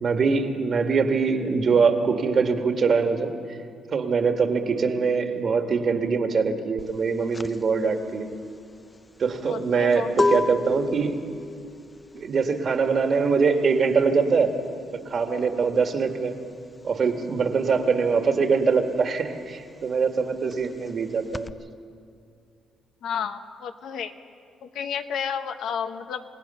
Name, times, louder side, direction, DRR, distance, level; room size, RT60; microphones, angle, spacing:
voice 1, 0.0-3.3 3.9-8.3 9.2-11.2 12.1-14.5 15.1-16.3 16.8-21.5, right 5 dB, 50° right, 5 dB, 1.9 m, -23 dB
sound 1, 6.8-17.0 17.3-21.5, left 3 dB, 20° left, 0.5 m, -31 dB
voice 2, 9.5-10.1 23.0-24.1 24.6-26.2, left 7 dB, 75° left, 7 dB, 1.1 m, -31 dB
28.0 x 17.5 x 5.7 m, 2.3 s
cardioid pair, 90°, 0 cm